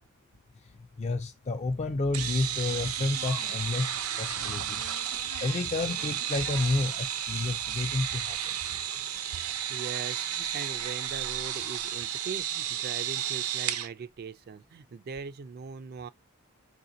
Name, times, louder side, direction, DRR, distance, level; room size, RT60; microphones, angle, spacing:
voice 1, 1.0-4.8 5.4-8.4, left 2 dB, 30° left, 0.3 m, -30 dB
sound 1, 2.1-13.9, right 11 dB, 85° right, 0.6 m, -33 dB
sound 2, 2.6-13.7, left 5 dB, 75° left, 0.7 m, -49 dB
voice 2, 9.3-16.1, right 5 dB, 45° right, 0.3 m, -41 dB
4.8 x 2.7 x 3.8 m
head